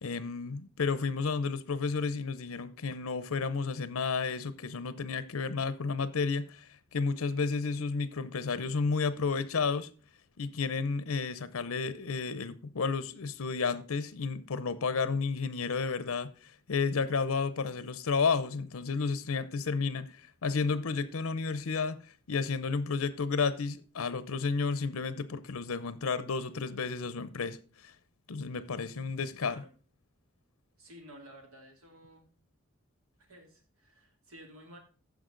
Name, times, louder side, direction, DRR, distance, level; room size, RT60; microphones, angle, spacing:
voice 1, 0.0-9.9 10.4-16.3 16.7-20.1 20.4-22.0 22.3-27.6 28.3-29.6, left 4 dB, 90° left, 0.7 m, -32 dB
voice 2, 29.4-29.7 30.8-32.3 33.2-34.8, right 1 dB, 85° right, 2.6 m, -53 dB
14.5 x 5.0 x 3.8 m
head